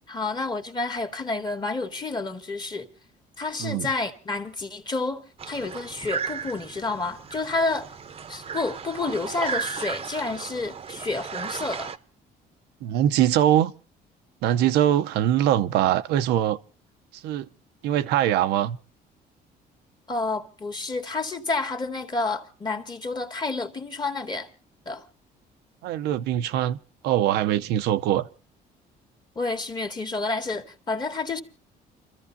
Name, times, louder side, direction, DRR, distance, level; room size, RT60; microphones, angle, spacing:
voice 1, 0.1-2.9 3.4-5.2 5.5-7.9 8.3-11.9 20.1-24.5 24.9-25.1 29.4-31.4, left 3 dB, 25° left, 1.9 m, -29 dB
sound 1, 5.4-12.0, right 6 dB, 35° right, 0.8 m, -35 dB
voice 2, 12.8-13.7 14.4-16.6 17.1-17.5 17.8-18.8 25.8-26.8 27.0-28.3, right 12 dB, 85° right, 0.7 m, -22 dB
29.5 x 14.0 x 2.7 m
cardioid pair, 110°, 17 cm